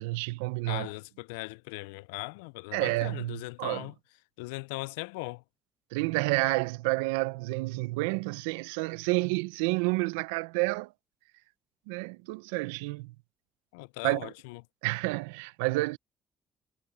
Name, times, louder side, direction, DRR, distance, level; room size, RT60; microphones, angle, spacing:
voice 1, 0.0-0.9 2.7-3.9 5.9-10.9 11.9-13.1 14.0-14.3 14.8-16.0, right 24 dB, 85° right, 0.7 m, -30 dB
voice 2, 0.7-3.9 4.4-5.4 13.7-14.6, left 25 dB, 85° left, 0.4 m, -39 dB
hypercardioid pair, 50°, 0 cm